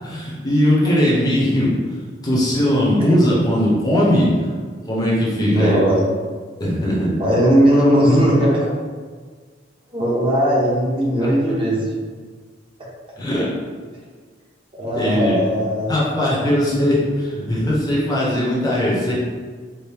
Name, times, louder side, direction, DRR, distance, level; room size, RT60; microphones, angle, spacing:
voice 1, 0.0-1.7 2.2-4.3 4.9-5.7 6.6-7.1 13.2-13.5 14.9-15.4 15.9-19.1, equal, 20° left, -5 dB, 0.7 m, -19 dB
voice 2, 5.4-6.1 7.2-8.7 9.9-11.9 14.8-15.9, equal, 30° right, -6 dB, 0.9 m, -17 dB
4.5 x 2.0 x 3.4 m, 1.5 s
head